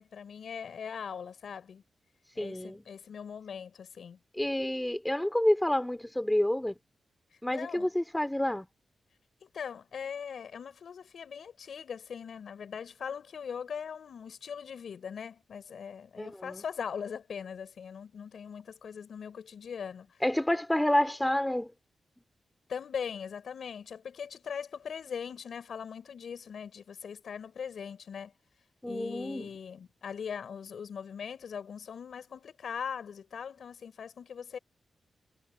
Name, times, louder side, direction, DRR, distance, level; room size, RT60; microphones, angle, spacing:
voice 1, 0.0-1.8 2.4-4.2 7.3-7.9 9.4-20.2 22.7-28.3 28.8-34.6, left 7 dB, 75° left, 5.5 m, -40 dB
voice 2, 2.4-2.8 4.4-6.8 7.4-8.7 16.2-16.6 20.2-21.7 28.8-29.5, left 1 dB, 10° left, 2.8 m, -29 dB
wide cardioid pair, 110°, 0 cm